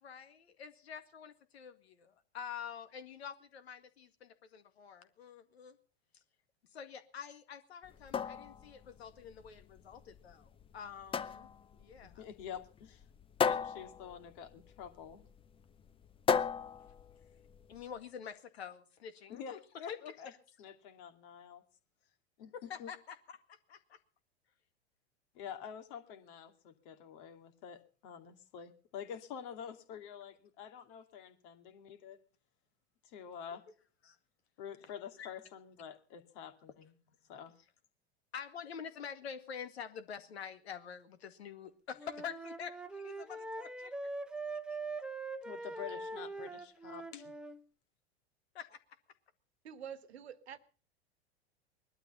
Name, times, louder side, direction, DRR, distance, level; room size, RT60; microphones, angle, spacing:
voice 1, 0.0-5.8 6.1-6.2 6.7-12.3 17.7-19.6 19.9-20.2 22.5-23.2 23.5-24.0 34.0-34.2 35.2-35.3 38.3-43.9 48.5-48.8, left 7 dB, 70° left, 9 dB, 2.1 m, -47 dB
sound 1, 7.8-17.8, left 6 dB, 15° left, 0.7 m, -37 dB
voice 2, 12.0-13.0 13.4-15.3 19.3-20.3 20.6-21.6 22.4-22.9 25.3-32.2 33.0-33.6 34.6-36.9 37.3-37.5 45.4-47.3, left 8 dB, 55° left, 7 dB, 2.6 m, -47 dB
Wind instrument woodwind instrument, 41.9-47.6, right 2 dB, ahead, 1.2 m, -42 dB
voice 3, 49.6-50.6, right 8 dB, 75° right, 14 dB, 1.5 m, -47 dB
20.0 x 12.5 x 5.6 m, 0.42 s
figure-of-eight pair, 95°, 32 cm